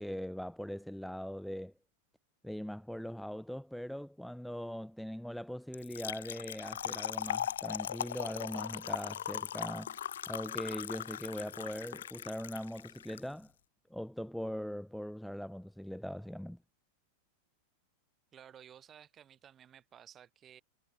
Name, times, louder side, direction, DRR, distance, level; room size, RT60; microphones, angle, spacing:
voice 1, 0.0-1.7 2.4-10.0 10.3-13.5 13.9-16.6, equal, ahead, 1.0 m, -41 dB
Trickle dribble / Fill (with liquid), 5.7-13.2, left 10 dB, 65° left, 0.6 m, -39 dB
voice 2, 18.3-20.6, right 9 dB, 25° right, 5.3 m, -55 dB
figure-of-eight pair, 90°, 0 cm